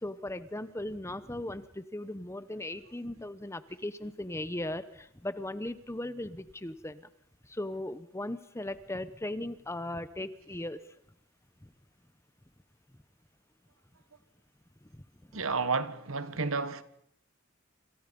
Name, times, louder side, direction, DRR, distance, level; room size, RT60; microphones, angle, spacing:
voice 1, 0.0-7.0 7.5-10.8, left 1 dB, 15° left, 0.9 m, -37 dB
voice 2, 15.3-16.8, right 4 dB, 70° right, 1.4 m, -31 dB
27.0 x 27.0 x 5.4 m
head